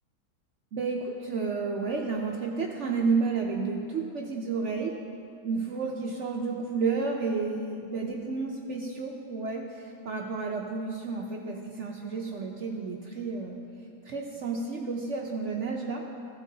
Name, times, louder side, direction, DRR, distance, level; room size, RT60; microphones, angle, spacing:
voice 1, 0.7-4.9 5.4-13.6 14.0-16.1, right 4 dB, 65° right, 0 dB, 0.7 m, -31 dB
16.0 x 8.1 x 2.7 m, 2.6 s
omnidirectional pair, 1.8 m